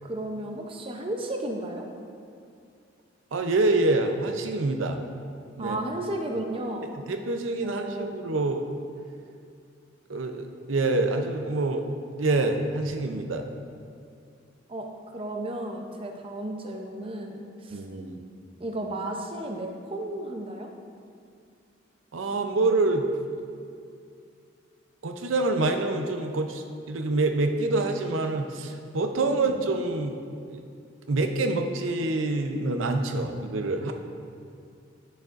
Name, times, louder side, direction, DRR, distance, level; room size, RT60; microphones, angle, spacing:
voice 1, 0.0-1.9 5.6-7.0 7.6-8.2 14.7-17.8 18.6-20.7 29.2-29.6, right 1 dB, 30° right, 2 dB, 0.6 m, -34 dB
voice 2, 3.3-5.0 5.6-5.8 6.9-8.6 10.1-11.8 12.2-13.5 17.7-18.2 22.1-23.0 25.0-30.2 30.5-30.6 31.1-33.9, right 2 dB, 85° right, 5 dB, 0.6 m, -26 dB
10.5 x 6.5 x 2.5 m, 2.4 s
head